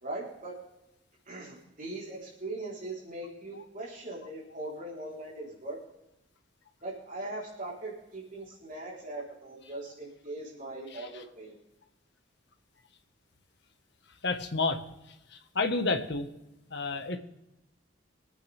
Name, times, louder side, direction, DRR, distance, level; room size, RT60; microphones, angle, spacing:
voice 1, 0.0-0.6 1.3-5.8 6.8-11.5, right 2 dB, 45° right, -5 dB, 4.0 m, -40 dB
voice 2, 14.2-14.8 15.5-16.3 16.7-17.2, left 3 dB, 60° left, 6 dB, 1.5 m, -29 dB
25.0 x 9.1 x 3.5 m, 0.92 s
head